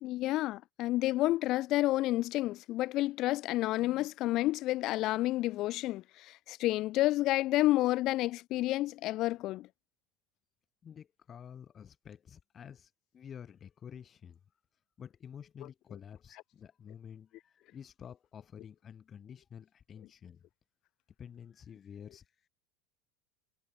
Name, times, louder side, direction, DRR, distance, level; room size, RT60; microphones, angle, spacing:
voice 1, 0.0-9.7, left 17 dB, 55° left, 0.3 m, -30 dB
voice 2, 10.8-14.4 15.0-20.4 21.2-22.3, left 8 dB, 35° left, 5.3 m, -50 dB
supercardioid pair, 105°, 0 cm